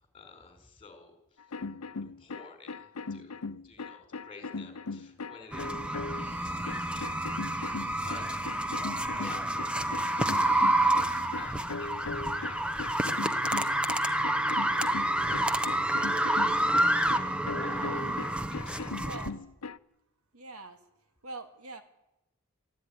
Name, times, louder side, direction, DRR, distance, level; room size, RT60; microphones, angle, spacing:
voice 1, 0.0-1.4 2.0-3.3 3.6-6.2 6.5-7.2 7.5-8.2 9.1-19.2, left 4 dB, 25° left, 6 dB, 4.7 m, -51 dB
sound 1, 1.4-6.3 6.7-19.8, left 4 dB, 80° left, 0.8 m, -39 dB
sound 2, 5.5-19.3, right 1 dB, 5° right, 1.0 m, -29 dB
voice 2, 19.0-19.4 20.3-20.8 21.2-21.8, right 2 dB, 90° right, 8 dB, 2.4 m, -43 dB
24.0 x 15.0 x 10.0 m, 0.89 s
head